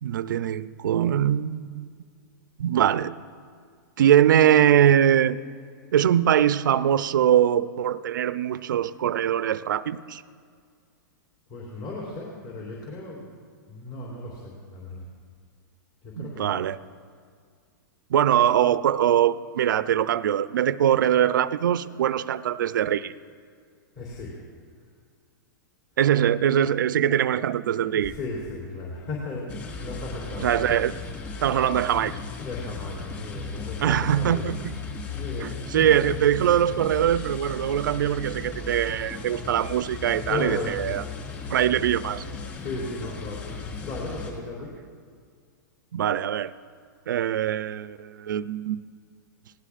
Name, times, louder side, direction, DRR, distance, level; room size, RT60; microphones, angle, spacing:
voice 1, 0.0-1.9 2.6-3.1 4.0-5.4 5.9-10.2 16.2-16.8 18.1-23.1 26.0-28.1 30.4-30.9 31.4-32.2 33.8-34.7 35.4-41.0 41.5-42.2 45.9-46.5 47.1-48.8, right 10 dB, 75° right, 15 dB, 0.5 m, -22 dB
voice 2, 11.5-13.2 13.7-15.0 16.0-16.7 23.9-24.4 26.9-30.8 32.4-34.5 35.1-35.9 40.2-40.9 42.6-43.6 43.8-44.7, left 3 dB, 40° left, -4 dB, 3.3 m, -35 dB
sound 1, 29.5-44.3, left 4 dB, 25° left, 4.0 m, -36 dB
27.5 x 18.0 x 2.5 m, 2.1 s
hypercardioid pair, 155°, 11 cm